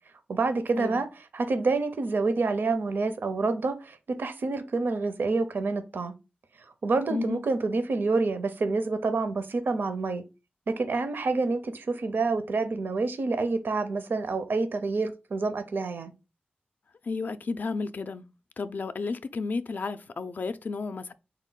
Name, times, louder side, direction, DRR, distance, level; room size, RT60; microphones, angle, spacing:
voice 1, 0.3-1.1 1.3-6.1 6.8-10.2 10.8-16.1, right 3 dB, 70° right, 0.5 m, -27 dB
voice 2, 7.1-7.4 17.0-18.2 18.6-21.1, left 4 dB, 55° left, 0.4 m, -32 dB
4.3 x 2.2 x 3.8 m
wide cardioid pair, 90°, 4 cm